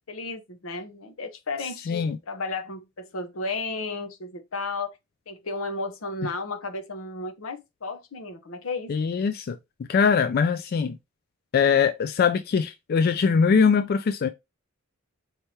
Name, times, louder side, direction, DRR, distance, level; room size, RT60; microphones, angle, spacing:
voice 1, 0.1-5.0 5.3-9.2, left 3 dB, 85° left, 0.8 m, -33 dB
voice 2, 8.9-9.6 9.9-11.0 11.5-14.3, left 6 dB, 50° left, 0.3 m, -22 dB
4.6 x 3.3 x 2.8 m
head